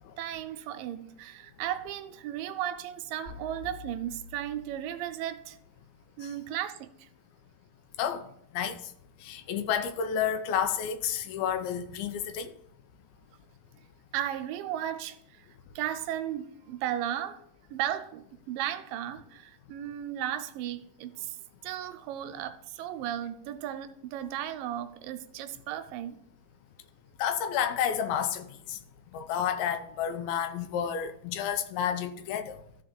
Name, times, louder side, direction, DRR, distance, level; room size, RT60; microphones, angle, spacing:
voice 1, 0.2-5.6 6.2-7.1 14.1-15.5 15.8-17.4 17.7-21.4 21.6-26.2, right 11 dB, 80° right, 2.1 m, -35 dB
sound 1, 3.3-5.4, left 6 dB, 40° left, 4.8 m, -47 dB
voice 2, 8.5-8.9 9.2-12.5 27.2-28.8 29.1-32.6, left 8 dB, 90° left, 2.7 m, -30 dB
13.5 x 4.6 x 5.2 m
omnidirectional pair, 4.2 m